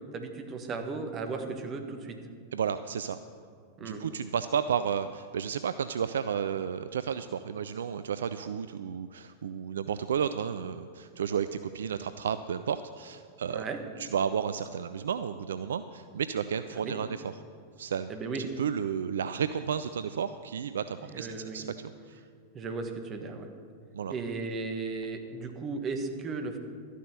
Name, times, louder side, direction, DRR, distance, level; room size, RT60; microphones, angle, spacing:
voice 1, 0.1-2.1 3.8-4.0 13.5-13.8 16.7-16.9 18.1-18.4 21.1-21.7 22.5-23.5 24.1-26.6, right 4 dB, 30° right, 5 dB, 1.6 m, -35 dB
voice 2, 2.5-3.2 3.8-13.6 14.0-17.4 17.8-18.1 18.4-21.7 22.1-22.2 23.9-24.1, right 7 dB, 65° right, 12 dB, 0.4 m, -32 dB
13.0 x 10.0 x 6.3 m, 2.3 s
figure-of-eight pair, 90°, 0 cm